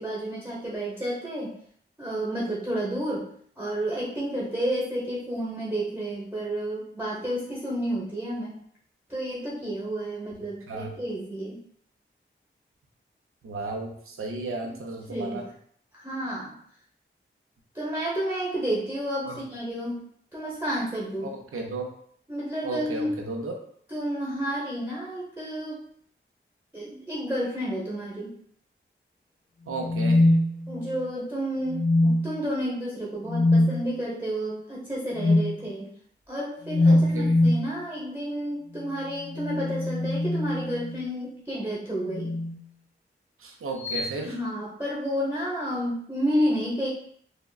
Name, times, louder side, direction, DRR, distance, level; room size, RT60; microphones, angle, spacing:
voice 1, 0.0-1.5 2.0-3.3 3.6-8.5 9.1-11.6 14.6-14.7 15.1-15.4 15.9-16.5 17.7-20.0 20.3-21.3 22.3-23.2 23.9-25.9 26.7-28.3 30.7-35.9 36.3-42.4 44.2-46.9, equal, 10° right, -6 dB, 0.9 m, -31 dB
voice 2, 13.4-15.5 19.2-19.4 21.2-21.9 22.6-23.5 29.7-30.3 36.9-37.4 43.4-44.4, right 2 dB, 90° right, 1 dB, 0.5 m, -34 dB
sound 1, 29.8-31.1 31.7-32.5 33.3-33.8 35.2-35.5 36.7-37.7 39.2-41.1 42.1-42.6 43.8-44.1, left 1 dB, 35° left, 0.4 m, -23 dB
3.5 x 2.0 x 2.3 m, 0.62 s
cardioid pair, 40°, 21 cm